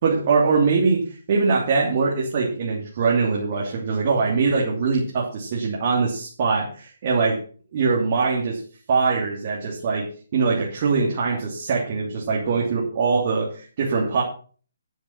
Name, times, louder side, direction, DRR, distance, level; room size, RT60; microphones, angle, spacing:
voice 1, 0.0-7.4 7.7-8.6 8.9-14.2, right 4 dB, 45° right, -2 dB, 2.9 m, -22 dB
11.5 x 7.2 x 5.9 m, 0.42 s
figure-of-eight pair, 140°, 0 cm